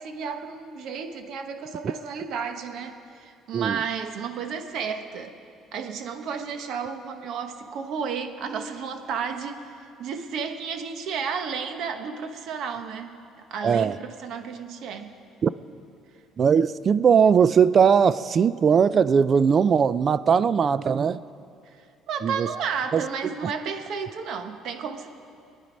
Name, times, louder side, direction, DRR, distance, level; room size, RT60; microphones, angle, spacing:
voice 1, 0.0-5.3 5.7-15.2 21.6-25.1, right 6 dB, 65° right, 1.1 m, -32 dB
voice 2, 13.6-14.0 15.4-15.5 16.4-21.2 22.2-22.5 22.9-23.0, right 6 dB, 35° right, 0.4 m, -19 dB
23.0 x 9.9 x 5.3 m
cardioid pair, 125°, 0 cm